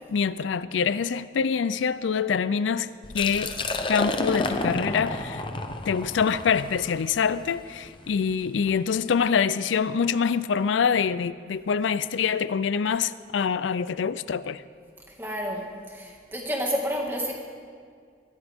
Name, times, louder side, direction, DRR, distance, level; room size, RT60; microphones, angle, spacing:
voice 1, 0.1-3.5 3.9-5.4 5.9-14.6, left 6 dB, 90° left, 0.4 m, -25 dB
Liquid, 3.0-8.8, left 2 dB, 25° left, 0.7 m, -31 dB
voice 2, 15.2-15.7 15.9-17.4, equal, 10° right, 1.9 m, -29 dB
21.0 x 14.5 x 3.6 m
head